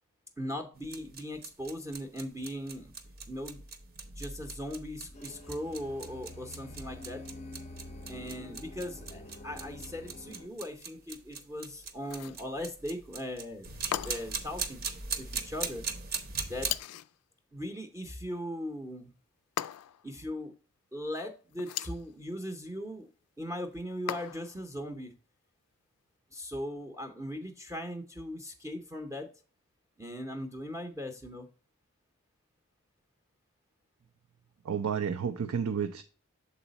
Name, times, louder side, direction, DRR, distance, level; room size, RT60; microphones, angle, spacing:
voice 1, 0.4-2.9 3.3-3.6 4.2-7.2 8.1-14.8 15.2-15.8 16.5-16.7 17.5-19.1 20.0-20.5 20.9-23.1 23.4-25.1 26.3-29.3 30.0-31.5, equal, 10° right, 0.6 m, -39 dB
sound 1, 0.8-16.8, right 5 dB, 45° right, 0.8 m, -40 dB
sound 2, 5.1-10.5, left 2 dB, 30° left, 0.5 m, -47 dB
sound 3, 12.0-12.5 13.9-14.4 16.6-17.2 19.6-20.1 21.5-22.0 24.1-24.6, left 12 dB, 90° left, 0.3 m, -37 dB
voice 2, 34.7-36.0, right 7 dB, 75° right, 0.5 m, -31 dB
7.1 x 4.0 x 4.0 m
head